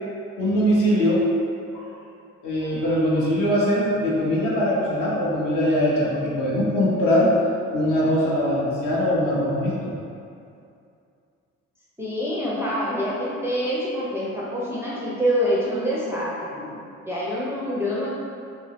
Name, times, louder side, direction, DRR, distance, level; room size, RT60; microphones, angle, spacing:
voice 1, 0.4-1.3 1.7-1.9 2.4-7.3 7.7-9.9, equal, 50° left, -6 dB, 1.0 m, -21 dB
voice 2, 12.0-18.1, equal, 5° right, -8 dB, 0.4 m, -26 dB
2.8 x 2.6 x 2.9 m, 2.5 s
figure-of-eight pair, 45°, 40 cm